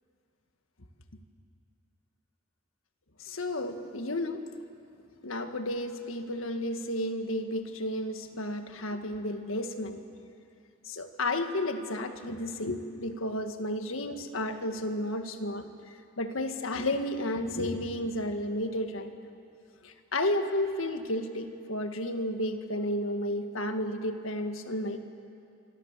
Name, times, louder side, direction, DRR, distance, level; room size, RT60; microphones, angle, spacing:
voice 1, 3.2-4.5 5.2-10.0 10.8-15.7 16.2-19.3 19.8-25.0, left 1 dB, 90° left, 7 dB, 1.7 m, -32 dB
26.5 x 24.0 x 7.4 m, 2.6 s
head